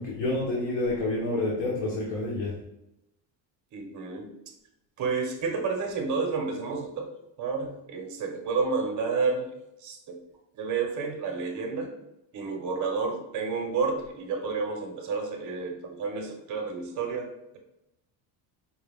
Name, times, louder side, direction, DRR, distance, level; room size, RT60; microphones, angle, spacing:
voice 1, 0.0-2.5, left 2 dB, 85° left, -3 dB, 1.1 m, -28 dB
voice 2, 3.7-4.3 5.0-7.1 7.4-9.5 9.8-10.0 10.5-11.9 12.3-17.6, right 4 dB, 40° right, 3 dB, 0.8 m, -30 dB
4.9 x 2.3 x 3.5 m, 0.87 s
cardioid pair, 170°, 44 cm